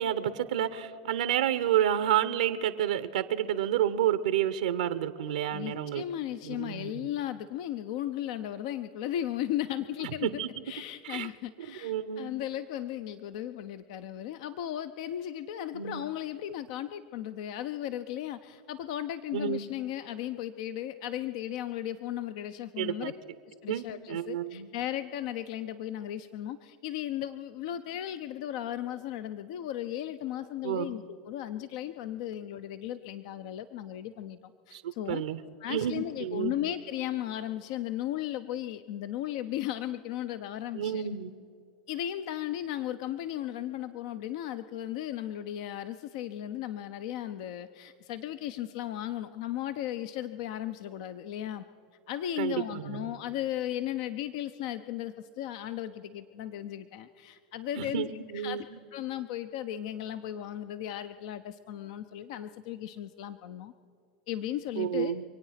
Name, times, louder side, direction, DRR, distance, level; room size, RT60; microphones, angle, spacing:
voice 1, 0.0-6.0 6.4-7.1 10.2-10.5 11.0-11.3 11.6-12.3 15.7-16.1 19.3-19.7 22.8-23.1 23.7-24.7 30.6-30.9 34.7-35.4 35.7-36.6 40.7-41.3 52.4-53.1 57.8-58.8 64.8-65.2, right 10 dB, 80° right, 13 dB, 0.8 m, -30 dB
voice 2, 5.5-10.3 10.7-23.1 23.5-34.4 34.7-35.2 35.6-41.1 41.9-51.6 52.1-58.7 58.9-63.7 64.3-65.1, left 12 dB, 60° left, 11 dB, 0.6 m, -36 dB
25.5 x 9.0 x 5.8 m, 2.6 s
hypercardioid pair, 105°, 4 cm